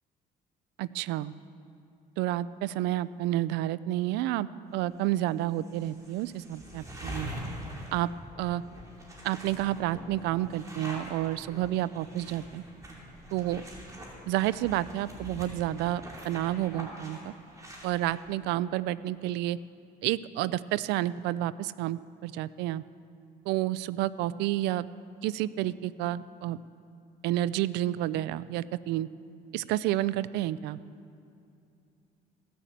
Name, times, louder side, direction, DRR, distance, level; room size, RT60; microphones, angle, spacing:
voice 1, 0.8-1.3 2.2-4.5 4.7-7.3 7.9-8.1 8.4-8.6 9.2-12.6 13.3-13.6 14.3-17.3 17.8-19.6 20.0-22.8 23.5-24.9 25.2-26.6 27.2-29.1 29.5-30.8, right 14 dB, 90° right, 18 dB, 0.4 m, -30 dB
sound 1, 5.1-5.2 5.6-18.2, equal, 20° right, 2.9 m, -44 dB
16.5 x 6.9 x 7.3 m, 2.6 s
cardioid pair, 110°, 17 cm